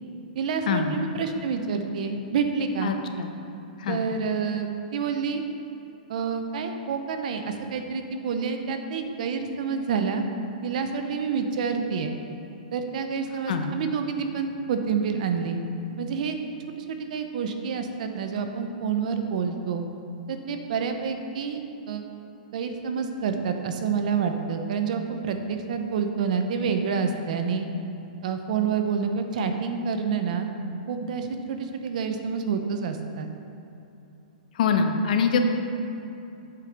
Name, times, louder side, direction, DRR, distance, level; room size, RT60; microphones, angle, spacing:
voice 1, 0.3-3.0 3.9-5.4 6.1-10.2 10.6-12.1 12.7-15.6 16.0-16.4 16.8-19.9 20.3-22.0 22.5-27.7 28.2-30.5 30.9-33.3, right 6 dB, 60° right, 6 dB, 0.8 m, -28 dB
voice 2, 2.8-3.3 3.8-4.1 13.5-13.8 34.6-35.4, left 6 dB, 65° left, 5 dB, 0.9 m, -24 dB
8.2 x 5.1 x 6.0 m, 2.9 s
hypercardioid pair, 150°, 5 cm